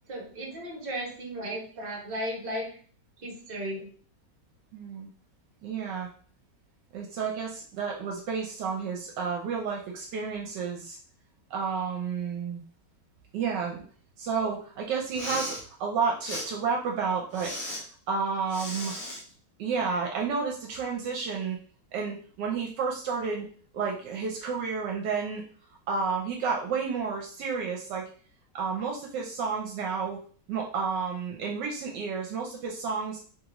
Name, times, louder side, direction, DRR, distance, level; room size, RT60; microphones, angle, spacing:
voice 1, 0.1-2.8 3.2-3.9, equal, 35° right, -2 dB, 1.2 m, -35 dB
voice 2, 4.7-5.1 5.6-6.1 6.9-11.0 11.5-12.6 13.3-13.8 14.2-17.6 18.1-18.9 19.6-21.6 21.9-23.5 23.7-25.4 25.9-28.1 28.5-30.2 30.5-33.2, right 5 dB, 80° right, 0 dB, 1.2 m, -31 dB
Respiratory sounds, 15.0-15.6 16.2-16.5 17.3-17.8 18.5-19.2, left 1 dB, 50° left, 1.3 m, -36 dB
3.3 x 2.6 x 2.8 m, 0.43 s
omnidirectional pair, 1.9 m